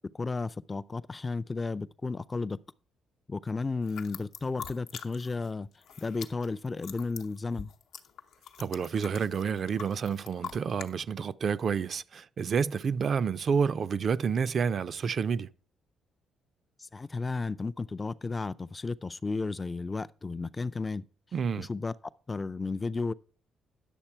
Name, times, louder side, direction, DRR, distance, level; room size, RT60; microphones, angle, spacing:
voice 1, 0.1-2.6 3.3-5.7 6.0-7.7 16.8-21.0 21.6-21.9 22.3-23.1, left 3 dB, 25° left, 0.4 m, -33 dB
sound 1, 3.8-5.5 5.7-10.9, left 8 dB, 80° left, 0.8 m, -44 dB
voice 2, 8.6-15.5 21.3-21.7, right 6 dB, 50° right, 0.4 m, -29 dB
10.0 x 6.6 x 4.4 m
cardioid pair, 90°, 0 cm